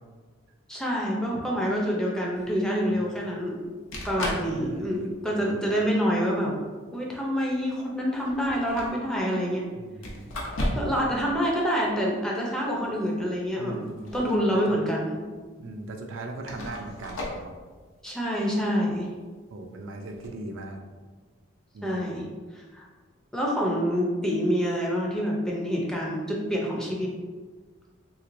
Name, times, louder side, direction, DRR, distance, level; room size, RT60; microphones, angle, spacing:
voice 1, 0.7-3.6 4.1-6.6 6.9-9.7 10.7-13.8 14.1-15.1 18.0-19.1 21.8-22.3 22.6-22.9 23.3-27.1, equal, 5° left, -3 dB, 0.4 m, -27 dB
sound 1, 2.4-2.5 3.6-3.7 3.9-4.5 5.0-5.3 6.3-6.4 8.1-8.9 10.0-11.0 11.3-11.4 13.7-14.5 14.8-14.9 15.7-15.8 16.4-17.4 20.1-20.3, left 1 dB, 85° left, 0.7 m, -34 dB
voice 2, 4.2-5.6 9.7-10.3 11.1-11.2 13.6-14.2 14.5-14.8 15.6-17.5 19.5-20.8 21.7-22.1, right 2 dB, 75° right, 3 dB, 0.4 m, -39 dB
3.2 x 3.0 x 2.5 m, 1.4 s
head